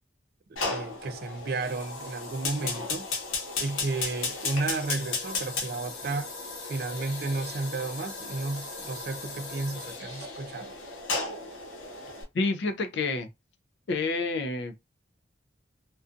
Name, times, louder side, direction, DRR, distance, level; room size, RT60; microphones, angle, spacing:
voice 1, 0.5-3.1 3.6-6.3 6.6-10.7, right 3 dB, 50° right, 0.4 m, -33 dB
Fire, 0.6-12.2, left 4 dB, 85° left, 0.8 m, -35 dB
voice 2, 12.3-13.3 13.9-14.8, left 3 dB, 60° left, 0.4 m, -28 dB
2.5 x 2.2 x 2.5 m
head